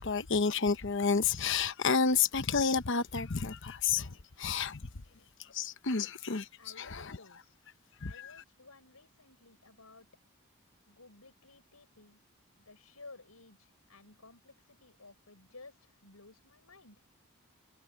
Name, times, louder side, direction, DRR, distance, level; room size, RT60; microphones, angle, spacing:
voice 1, 0.0-4.9 5.5-6.4 6.8-7.2 8.0-8.3, left 5 dB, 55° left, 1.0 m, -30 dB
voice 2, 6.6-7.6 8.1-10.1 10.9-12.2 12.6-17.0, left 3 dB, 85° left, 6.7 m, -55 dB
head